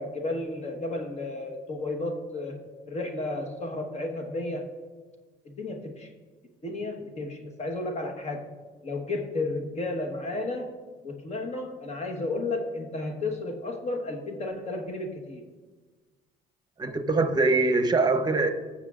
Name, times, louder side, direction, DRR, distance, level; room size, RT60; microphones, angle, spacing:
voice 1, 0.0-4.7 5.4-6.1 6.6-8.5 8.8-10.7 11.0-15.4, left 2 dB, 40° left, 3 dB, 1.3 m, -33 dB
voice 2, 16.8-18.5, right 3 dB, 25° right, 7 dB, 0.9 m, -23 dB
18.5 x 7.2 x 2.4 m, 1.4 s
cardioid pair, 110°, 17 cm